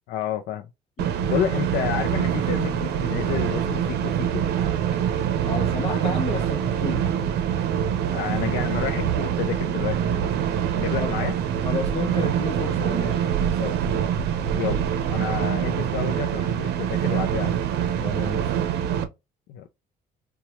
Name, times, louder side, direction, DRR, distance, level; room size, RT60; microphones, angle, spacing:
voice 1, 0.1-0.7 1.3-4.5 8.1-10.4 10.8-11.3 14.5-17.6 19.5-19.7, left 10 dB, 75° left, 0.4 m, -30 dB
voice 2, 1.0-1.6 5.5-7.1 11.0-11.2 11.6-13.8 18.0-18.8, left 4 dB, 40° left, 0.7 m, -32 dB
sound 1, 1.0-19.0, right 9 dB, 75° right, 0.6 m, -25 dB
2.8 x 2.2 x 2.9 m
cardioid pair, 110°, 17 cm